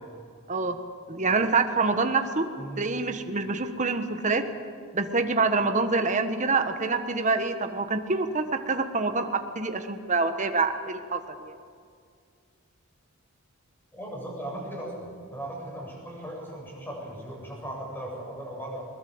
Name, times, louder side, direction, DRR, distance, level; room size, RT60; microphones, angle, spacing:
voice 1, 1.1-2.5 2.8-4.4 4.9-11.5, right 3 dB, 35° right, 7 dB, 1.3 m, -26 dB
voice 2, 2.6-2.9 13.9-18.8, right 1 dB, 10° left, -2 dB, 7.6 m, -37 dB
21.5 x 20.5 x 8.0 m, 2.2 s
head